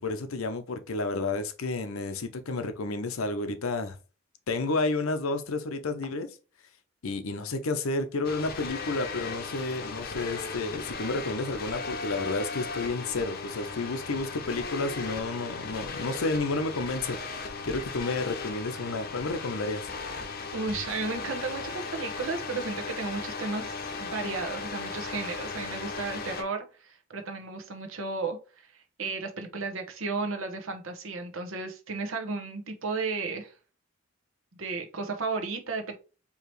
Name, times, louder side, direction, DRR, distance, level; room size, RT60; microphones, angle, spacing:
voice 1, 0.0-4.0 4.5-6.3 7.0-19.9, left 3 dB, 85° left, 0.7 m, -31 dB
sound 1, 8.2-26.4, left 4 dB, 45° left, 0.7 m, -37 dB
voice 2, 20.5-28.4 28.7-33.5 34.5-35.9, right 4 dB, 70° right, 1.0 m, -34 dB
4.7 x 2.9 x 3.1 m
head